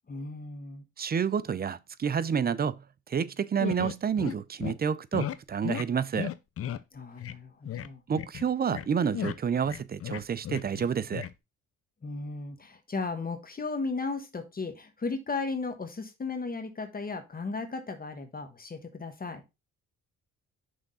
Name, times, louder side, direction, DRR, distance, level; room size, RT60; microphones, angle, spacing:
voice 1, 0.1-0.8 6.9-8.0 12.0-19.4, left 3 dB, 30° left, 1.2 m, -35 dB
voice 2, 1.0-2.8 3.1-6.3 8.1-11.3, right 7 dB, 30° right, 0.5 m, -29 dB
sound 1, 3.6-4.4 4.6-4.7 5.1-5.4 5.6-5.8 6.1-6.8 7.2-7.4 7.7-7.9 8.2-8.9 9.1-10.9 11.1-11.3, left 10 dB, 50° left, 0.6 m, -35 dB
6.3 x 3.6 x 5.4 m
cardioid pair, 90°, 30 cm